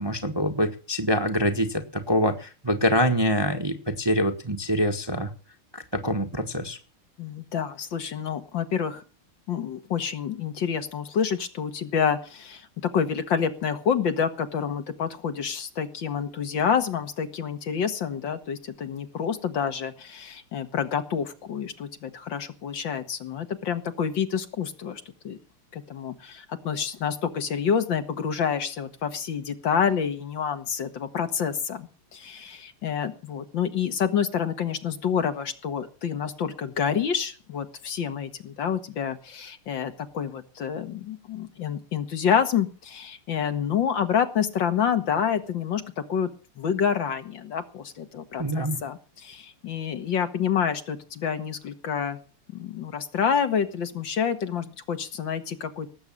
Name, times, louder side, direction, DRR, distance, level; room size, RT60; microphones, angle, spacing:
voice 1, 0.0-5.3 5.7-6.8 48.4-48.8, equal, 15° right, 4 dB, 1.1 m, -25 dB
voice 2, 7.2-9.0 9.5-25.4 25.7-46.3 46.6-48.4 48.8-52.2 52.5-55.9, left 7 dB, 65° left, 8 dB, 2.1 m, -28 dB
18.5 x 8.1 x 7.3 m, 0.36 s
omnidirectional pair, 2.3 m